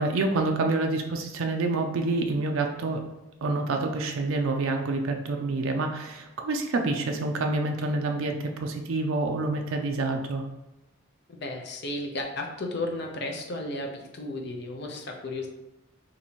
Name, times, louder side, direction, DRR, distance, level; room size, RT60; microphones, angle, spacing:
voice 1, 0.0-3.0 3.4-10.5, right 3 dB, 70° right, 3 dB, 0.4 m, -27 dB
voice 2, 11.4-15.5, left 2 dB, 50° left, 2 dB, 0.5 m, -34 dB
2.8 x 2.6 x 4.3 m, 0.98 s
head